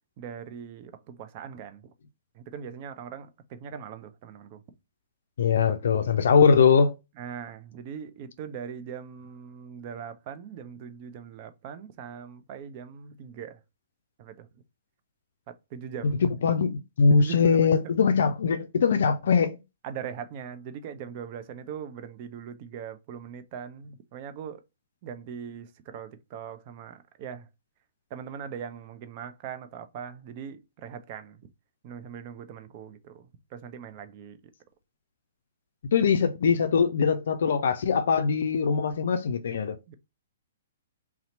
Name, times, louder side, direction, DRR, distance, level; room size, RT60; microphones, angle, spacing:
voice 1, 0.2-1.9 2.3-4.6 7.2-13.6 14.2-14.5 15.5-16.2 17.1-17.9 19.8-24.6 25.0-27.5 28.1-31.4 31.8-33.2 33.5-34.4 39.9-40.0, right 7 dB, 40° right, 0.5 m, -40 dB
voice 2, 5.4-6.9 16.2-19.6 35.9-39.8, left 6 dB, 65° left, 0.4 m, -22 dB
2.8 x 2.0 x 4.0 m
hypercardioid pair, 120°, 0 cm